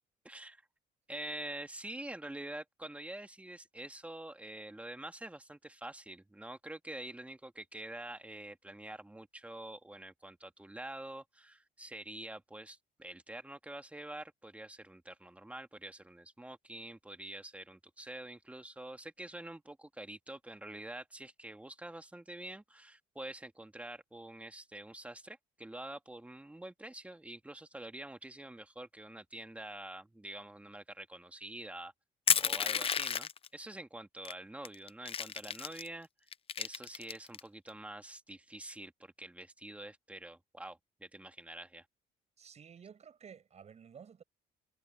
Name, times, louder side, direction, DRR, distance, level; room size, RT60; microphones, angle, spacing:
voice 1, 0.2-0.6 1.1-31.9 32.4-36.1 36.6-41.9, right 1 dB, 10° right, 2.0 m, -46 dB
Crushing, 32.3-33.5 34.3-34.4 34.7-35.9 36.3-37.4, left 7 dB, 35° left, 0.6 m, -31 dB
voice 2, 42.4-44.2, right 7 dB, 40° right, 6.6 m, -53 dB
cardioid pair, 110°, 17 cm